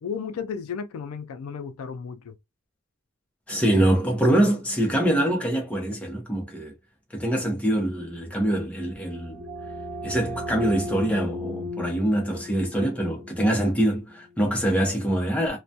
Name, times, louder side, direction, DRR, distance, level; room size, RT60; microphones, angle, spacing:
voice 1, 0.0-2.3, left 6 dB, 80° left, 0.3 m, -33 dB
voice 2, 3.5-6.7 7.1-9.4 10.0-15.6, right 1 dB, 5° left, 0.6 m, -24 dB
sound 1, 8.8-14.4, left 1 dB, 40° right, 0.5 m, -37 dB
2.2 x 2.1 x 2.6 m
head